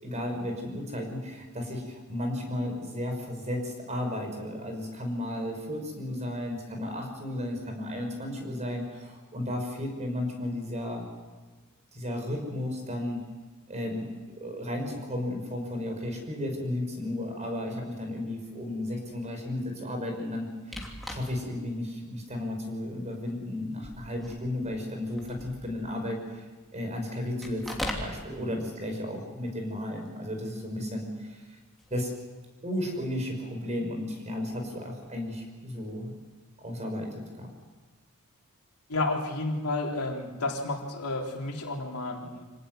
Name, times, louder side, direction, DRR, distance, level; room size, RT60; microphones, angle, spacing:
voice 1, 0.0-11.1 11.9-13.2 13.7-14.1 14.4-26.4 26.7-31.4 31.9-32.1 32.6-36.1 36.6-37.5, left 1 dB, 30° right, 3 dB, 5.8 m, -34 dB
sound 1, 20.7-21.5 22.1-22.2 23.0-23.3 23.7-25.9 27.4-28.1 31.8-32.1, left 1 dB, ahead, 2.9 m, -39 dB
voice 2, 38.9-42.4, left 2 dB, 90° left, 0 dB, 3.8 m, -31 dB
26.0 x 18.0 x 7.9 m, 1.3 s
head